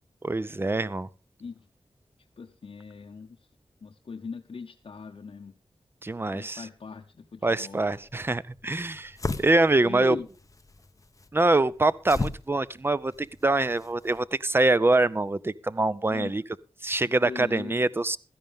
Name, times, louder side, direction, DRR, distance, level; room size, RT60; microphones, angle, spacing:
voice 1, 0.2-1.1 6.0-6.7 7.4-10.2 11.3-16.4 16.8-18.2, right 2 dB, 25° right, 0.5 m, -24 dB
voice 2, 2.4-3.4 3.8-5.5 6.3-7.9 8.6-8.7 9.8-10.3 16.1-16.3 17.2-17.8, left 5 dB, 65° left, 1.0 m, -39 dB
sound 1, 7.9-14.2, left 3 dB, 35° left, 0.9 m, -38 dB
16.0 x 13.0 x 3.6 m
wide cardioid pair, 105°, 10 cm